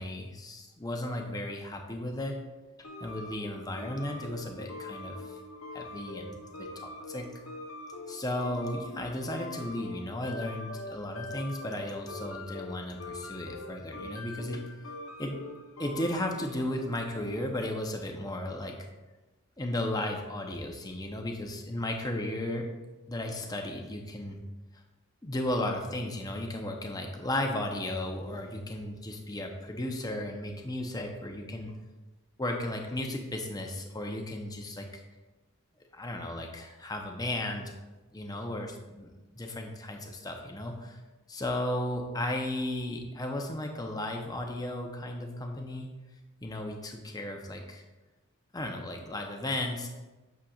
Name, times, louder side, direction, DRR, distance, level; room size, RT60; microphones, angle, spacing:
voice 1, 0.0-2.4 3.0-5.4 5.7-7.3 8.1-14.6 15.2-15.4 15.8-18.8 19.6-22.7 23.1-24.4 25.2-31.7 32.4-35.0 35.9-37.7 38.1-41.0 41.3-45.9 46.4-47.8 48.5-49.9, left 1 dB, 15° left, 3 dB, 0.7 m, -35 dB
sound 1, 2.8-17.6, left 2 dB, 70° left, 0.7 m, -43 dB
8.7 x 6.4 x 2.4 m, 1.1 s
head